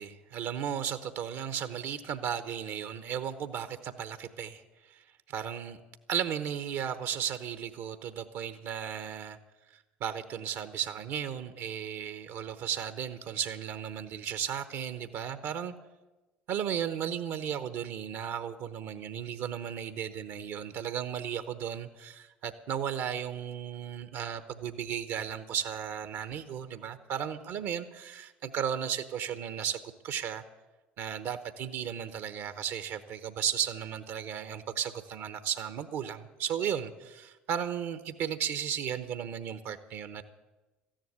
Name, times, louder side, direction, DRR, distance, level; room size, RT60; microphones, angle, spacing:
voice 1, 0.0-4.6 4.9-5.8 6.1-9.4 9.7-15.7 16.5-30.4 31.0-40.2, right 8 dB, 60° right, 12 dB, 0.9 m, -35 dB
14.0 x 10.5 x 9.5 m, 1.1 s
hypercardioid pair, 60°, 5 cm